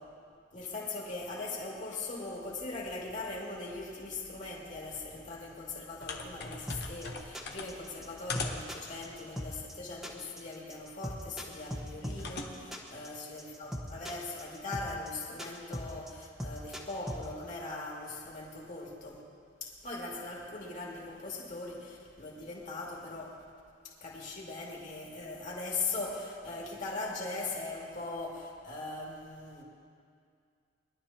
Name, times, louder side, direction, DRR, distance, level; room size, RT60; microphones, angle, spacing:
voice 1, 0.5-19.2 19.6-23.4 24.0-29.6, left 3 dB, 40° left, -4 dB, 2.5 m, -40 dB
sound 1, 6.0-9.6 11.6-12.5, left 3 dB, 60° left, 1.1 m, -42 dB
sound 2, 6.7-17.3, equal, ahead, 1.2 m, -39 dB
22.0 x 11.5 x 2.9 m, 2.2 s
head